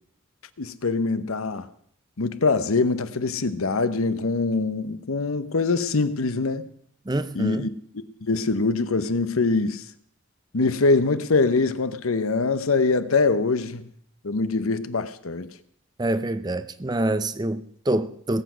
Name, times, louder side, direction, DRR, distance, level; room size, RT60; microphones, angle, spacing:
voice 1, 0.6-1.7 2.2-6.7 7.3-7.7 8.2-9.8 10.5-13.9 14.2-15.5, left 3 dB, 85° left, 0.9 m, -23 dB
voice 2, 7.1-7.7 16.0-18.4, right 1 dB, 20° right, 0.5 m, -26 dB
19.0 x 8.1 x 6.2 m
head